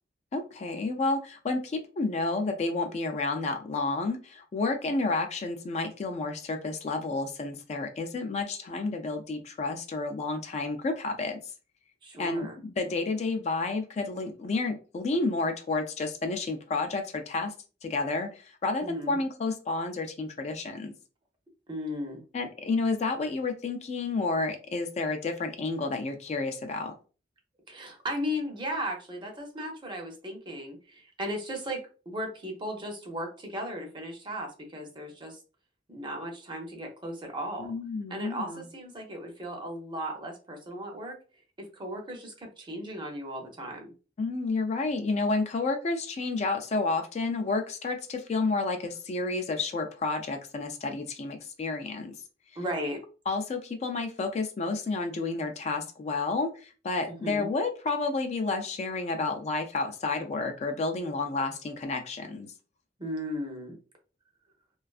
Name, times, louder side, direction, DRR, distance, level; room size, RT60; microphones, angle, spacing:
voice 1, 0.3-11.4 12.2-17.5 17.8-20.9 22.3-26.9 37.6-38.7 44.2-52.1 53.3-62.5, left 3 dB, 40° left, 5 dB, 0.3 m, -30 dB
voice 2, 12.0-12.6 18.8-19.2 21.7-22.2 27.7-31.8 32.1-35.4 35.9-37.7 38.1-41.2 41.8-43.9 52.6-53.0 57.2-57.5 63.0-63.8, equal, 25° right, 2 dB, 0.6 m, -36 dB
2.4 x 2.3 x 2.3 m, 0.35 s
head